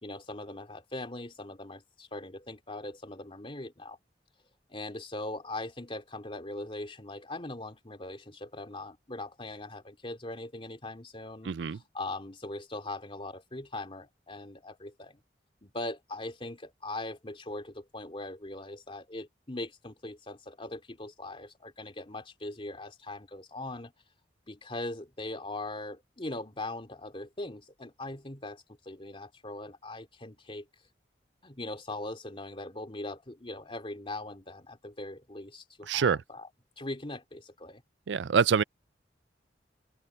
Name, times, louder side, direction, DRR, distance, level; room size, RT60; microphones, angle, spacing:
voice 1, 0.0-4.0 4.7-15.2 15.6-23.9 24.5-30.7 31.4-36.5 36.8-37.8, left 2 dB, 30° left, 2.9 m, -40 dB
voice 2, 11.5-11.8 35.9-36.2 38.1-38.6, right 6 dB, 85° right, 0.4 m, -25 dB
head